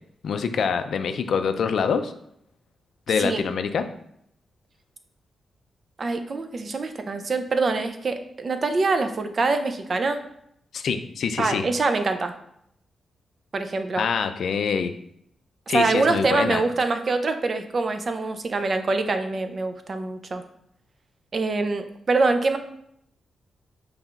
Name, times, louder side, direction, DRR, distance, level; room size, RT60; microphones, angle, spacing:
voice 1, 0.2-2.1 3.1-3.9 10.7-11.6 14.0-14.9 15.7-16.6, left 6 dB, 70° left, 9 dB, 0.3 m, -25 dB
voice 2, 6.0-10.2 11.4-12.3 13.5-14.0 15.7-20.4 21.3-22.6, right 3 dB, 40° right, 8 dB, 0.4 m, -24 dB
5.4 x 3.3 x 2.4 m, 0.73 s
wide cardioid pair, 125°, 0 cm